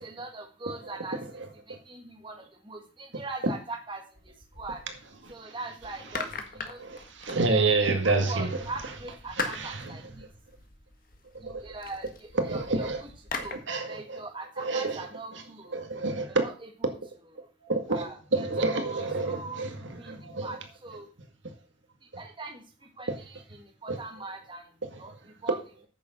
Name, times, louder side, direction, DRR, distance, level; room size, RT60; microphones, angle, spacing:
voice 1, 0.0-1.2 1.7-2.4 2.7-4.0 4.6-4.8 5.3-6.8 7.5-10.0 11.6-13.1 13.4-13.5 13.9-15.8 16.3-16.7 17.9-19.6 19.9-20.2 20.4-21.1 22.2-22.6 23.0-24.6 25.0-25.1 25.4-25.6, right 3 dB, 25° right, 1.6 m, -41 dB
sound 1, 4.1-5.3 5.8-8.0 8.6-13.5, left 4 dB, 50° left, 1.6 m, -41 dB
voice 2, 6.8-8.6 9.4-9.9 11.4-11.6 12.3-13.0 13.4-14.2 14.6-15.1 15.3-15.4 15.7-16.4 17.6-20.5 23.9-24.0 24.9-25.0, right 3 dB, 75° right, 2.0 m, -29 dB
9.6 x 7.1 x 6.1 m
head